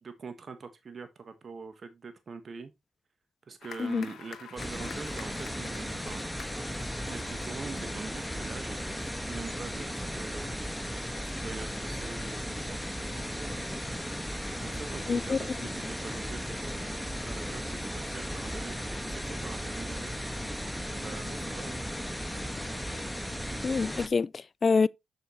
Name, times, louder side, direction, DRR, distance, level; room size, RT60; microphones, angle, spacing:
voice 1, 0.0-2.7 3.5-6.2 7.1-10.6 11.2-12.8 13.1-13.8 14.6-15.7 16.0-18.7 19.0-20.1 21.0-21.8, right 5 dB, 50° right, 1.3 m, -44 dB
sound 1, 3.6-9.1, left 8 dB, 70° left, 0.9 m, -49 dB
sound 2, 4.6-24.1, equal, 5° left, 1.4 m, -36 dB
voice 2, 15.1-15.4 23.6-24.9, left 4 dB, 45° left, 0.4 m, -26 dB
6.9 x 6.7 x 3.0 m
hypercardioid pair, 45°, 0 cm